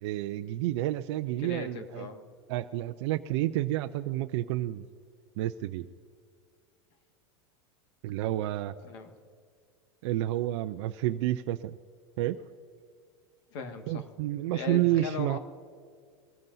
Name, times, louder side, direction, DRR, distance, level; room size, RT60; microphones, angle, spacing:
voice 1, 0.0-2.1 2.5-4.9 5.4-5.9 8.0-8.7 10.0-11.8 12.2-12.4 13.9-15.4, right 14 dB, 65° right, 7 dB, 0.6 m, -30 dB
voice 2, 1.4-2.3 8.8-9.1 13.5-14.0 14.5-15.4, left 4 dB, 65° left, 6 dB, 1.8 m, -38 dB
22.5 x 15.0 x 2.7 m, 2.1 s
supercardioid pair, 125°, 15 cm